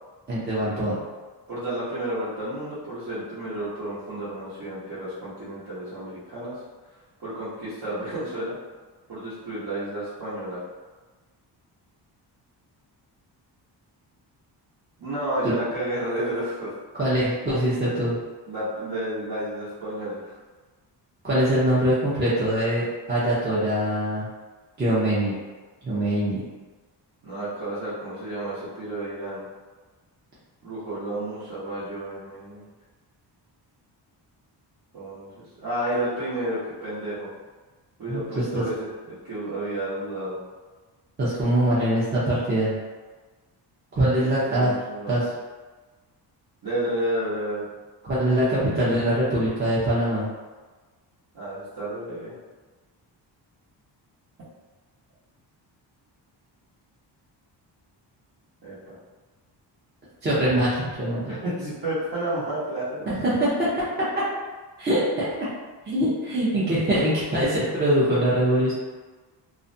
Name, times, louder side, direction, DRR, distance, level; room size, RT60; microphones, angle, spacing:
voice 1, 0.3-1.0 15.4-15.5 16.9-18.2 21.2-24.3 24.8-25.3 25.8-26.4 38.1-38.6 41.2-42.7 44.0-44.7 45.1-45.3 48.0-50.3 60.2-61.4 63.2-63.9 64.8-65.3 65.9-68.7, right 1 dB, 25° right, -10 dB, 0.5 m, -23 dB
voice 2, 1.5-6.6 7.2-8.5 9.1-10.6 15.0-16.7 18.5-20.3 27.2-29.4 30.6-32.7 34.9-37.3 38.0-40.4 44.2-45.2 46.6-47.7 51.3-52.3 58.6-59.0 61.3-63.0, right 1 dB, 60° right, -13 dB, 1.0 m, -31 dB
2.4 x 2.1 x 2.6 m, 1.3 s
cardioid pair, 120°, 43 cm